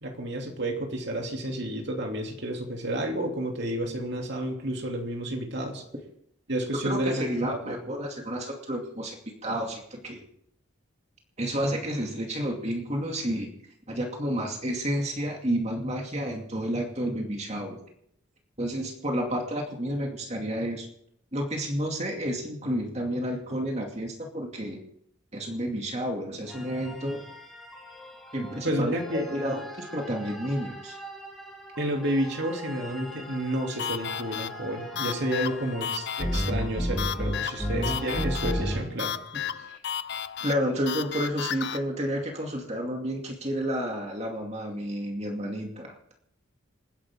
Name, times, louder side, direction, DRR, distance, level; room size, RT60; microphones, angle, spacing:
voice 1, 0.0-5.8 6.5-7.8 28.6-29.3 31.8-39.1, right 1 dB, 55° right, 2 dB, 2.8 m, -30 dB
voice 2, 6.8-9.2 9.4-10.2 11.4-13.5 13.9-17.8 18.6-20.9 21.3-24.8 25.3-27.2 28.3-29.0 29.3-31.0 39.3-39.7 40.4-45.9, equal, 30° right, 1 dB, 2.4 m, -30 dB
sound 1, 26.5-38.8, equal, ahead, 3.4 m, -35 dB
sound 2, 33.8-41.8, left 9 dB, 55° left, 0.5 m, -34 dB
27.5 x 11.0 x 3.7 m, 0.72 s
head